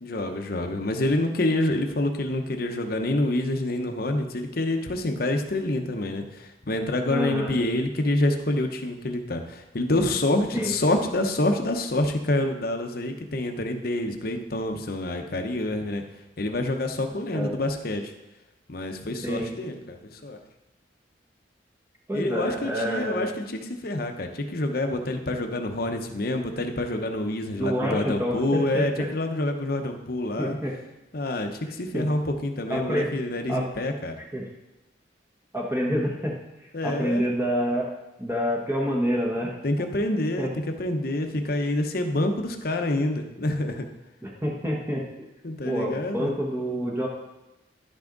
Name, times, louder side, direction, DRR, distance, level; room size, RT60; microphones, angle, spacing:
voice 1, 0.0-16.0 16.4-18.1 18.7-20.4 22.1-30.6 31.1-34.2 36.7-37.3 39.6-40.5 40.8-43.9 45.4-46.3, left 1 dB, 50° left, 5 dB, 0.9 m, -27 dB
voice 2, 7.1-7.5 10.5-10.7 17.3-17.6 19.2-19.5 22.1-23.3 27.6-29.1 30.4-30.8 31.9-32.1 32.7-33.1 33.5-33.7 34.3-34.5 35.5-36.4 36.6-37.9 38.2-39.9 40.4-40.5 44.2-45.0 45.6-47.1, equal, 10° right, -2 dB, 1.1 m, -27 dB
11.0 x 6.0 x 3.9 m, 0.96 s
head